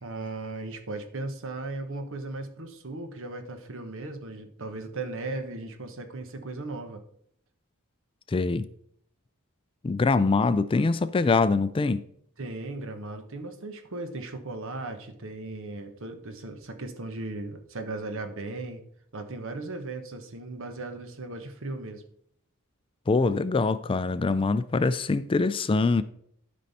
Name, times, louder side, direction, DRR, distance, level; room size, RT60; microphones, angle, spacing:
voice 1, 0.0-7.0 12.4-18.8 19.1-22.0, right 2 dB, 65° right, 1.2 m, -37 dB
voice 2, 8.3-8.7 9.8-12.0 23.1-26.0, left 3 dB, 25° left, 0.3 m, -24 dB
11.5 x 5.4 x 4.2 m
head